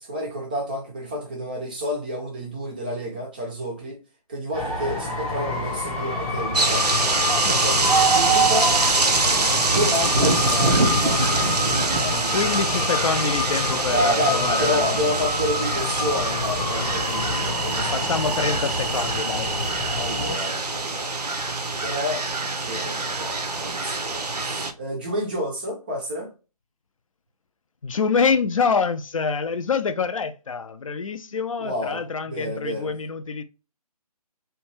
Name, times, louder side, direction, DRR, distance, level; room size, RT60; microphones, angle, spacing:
voice 1, 0.0-4.0 4.3-7.0 7.3-9.2 9.7-12.7 13.9-18.2 19.9-21.2 21.4-26.3 31.6-32.0 32.3-32.9, equal, 15° right, 0.4 m, -30 dB
sound 1, 4.5-20.3, left 3 dB, 10° left, 0.9 m, -28 dB
sound 2, 6.5-24.7, right 3 dB, 90° right, 0.6 m, -24 dB
voice 2, 12.3-15.1 17.9-19.6 27.8-33.4, left 5 dB, 55° left, 0.4 m, -26 dB
2.7 x 2.2 x 3.0 m
figure-of-eight pair, 145°, 20 cm